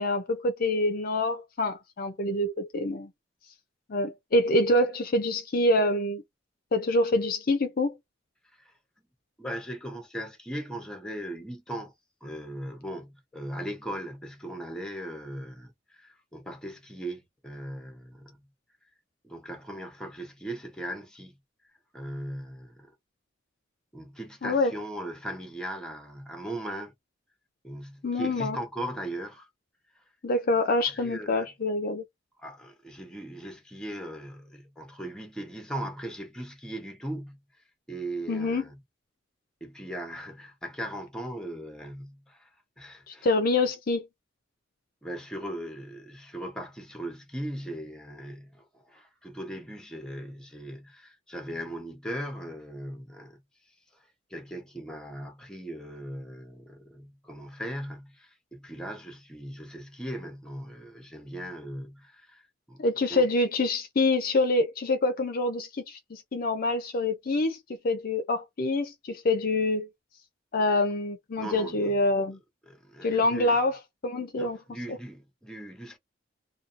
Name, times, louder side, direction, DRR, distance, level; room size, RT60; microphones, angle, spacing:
voice 1, 0.0-3.1 3.9-6.2 6.7-8.0 24.4-24.7 28.0-28.6 30.2-32.0 38.3-38.6 43.1-44.1 62.8-67.6 67.8-69.9 70.5-72.4 73.0-73.8 74.0-74.6, left 2 dB, 50° left, 0.5 m, -26 dB
voice 2, 9.4-11.9 12.2-18.4 19.2-21.3 21.9-22.9 23.9-26.9 27.6-29.5 30.9-31.5 32.4-37.4 37.9-38.8 39.6-42.5 42.8-43.3 45.0-53.4 54.3-62.4 62.7-62.8 63.1-63.2 71.4-72.0 72.7-73.6 74.4-76.0, right 1 dB, 5° left, 0.8 m, -38 dB
2.6 x 2.3 x 2.5 m
head